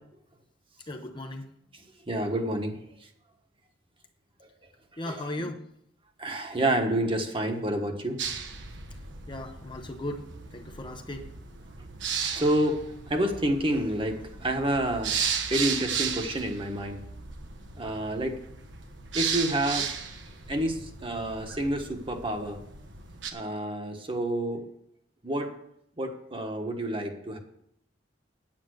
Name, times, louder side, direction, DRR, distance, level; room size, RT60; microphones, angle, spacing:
voice 1, 0.9-1.5 5.0-5.6 9.3-11.3, left 1 dB, 25° left, 5 dB, 0.8 m, -37 dB
voice 2, 1.7-3.1 4.4-4.5 5.1-5.2 6.2-8.2 12.3-15.2 15.5-17.0 17.7-18.4 19.1-19.9 20.5-22.6 23.3-24.7 25.2-25.6 26.0-27.4, right 1 dB, 30° right, 4 dB, 1.4 m, -29 dB
sound 1, 8.2-23.3, right 6 dB, 75° right, 1.3 m, -35 dB
9.0 x 8.8 x 6.4 m, 0.74 s
head